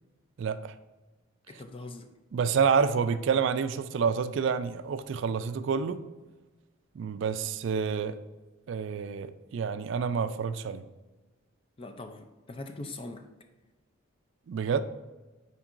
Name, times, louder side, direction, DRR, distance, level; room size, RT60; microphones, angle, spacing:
voice 1, 0.4-0.7 2.3-6.0 7.0-8.2 8.7-10.8 14.5-14.8, right 6 dB, 60° right, 0.3 m, -28 dB
voice 2, 1.5-2.1 11.8-13.3, left 2 dB, 25° left, 0.4 m, -42 dB
8.8 x 4.5 x 2.5 m
head